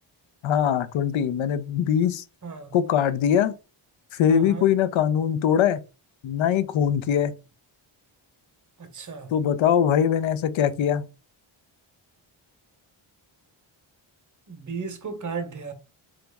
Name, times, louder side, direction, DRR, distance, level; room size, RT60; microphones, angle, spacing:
voice 1, 0.4-2.2 2.7-3.6 4.1-5.8 6.2-7.3 9.3-11.1, left 8 dB, 70° left, 0.5 m, -22 dB
voice 2, 2.4-2.7 4.3-4.7 8.8-9.3 14.5-15.7, right 5 dB, 40° right, 0.8 m, -34 dB
3.0 x 2.5 x 3.3 m
cardioid pair, 75°, 49 cm